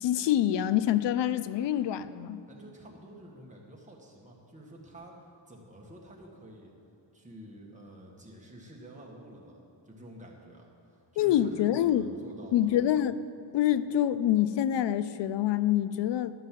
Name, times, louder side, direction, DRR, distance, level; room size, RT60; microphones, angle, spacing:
voice 1, 0.0-2.4 11.2-12.1 12.5-13.2 13.5-16.3, left 11 dB, 70° left, 13 dB, 0.5 m, -26 dB
voice 2, 2.5-6.7 7.1-12.8, right 1 dB, 15° right, -2 dB, 1.6 m, -49 dB
11.5 x 5.4 x 7.5 m, 2.8 s
wide cardioid pair, 135°, 45 cm